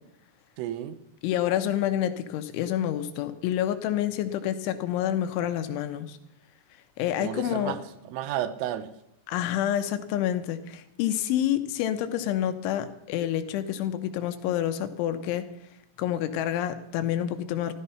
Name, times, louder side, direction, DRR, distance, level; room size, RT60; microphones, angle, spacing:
voice 1, 0.6-1.0 7.2-8.9, right 11 dB, 85° right, 3.5 m, -32 dB
voice 2, 1.2-6.2 7.0-7.8 9.3-15.5 16.0-17.7, left 11 dB, 75° left, 3.2 m, -28 dB
14.5 x 13.0 x 5.6 m
omnidirectional pair, 5.8 m